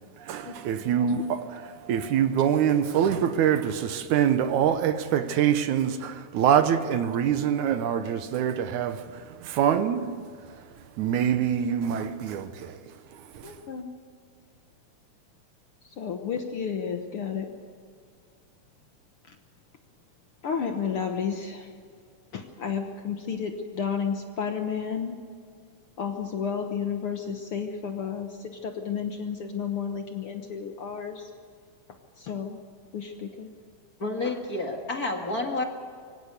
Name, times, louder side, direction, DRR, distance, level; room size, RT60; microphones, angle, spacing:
voice 1, 0.3-1.2 1.6-10.2 11.0-12.8 13.3-13.5, right 9 dB, 75° right, 2.3 m, -25 dB
voice 2, 1.0-1.4 13.4-13.9 15.8-17.5 19.3-19.4 20.4-21.7 22.3-25.2 26.0-31.3 32.2-32.6 32.9-33.5 34.2-34.3, left 7 dB, 60° left, 1.6 m, -32 dB
voice 3, 34.0-35.6, left 2 dB, 35° left, 1.7 m, -29 dB
24.0 x 17.0 x 6.8 m
omnidirectional pair, 3.6 m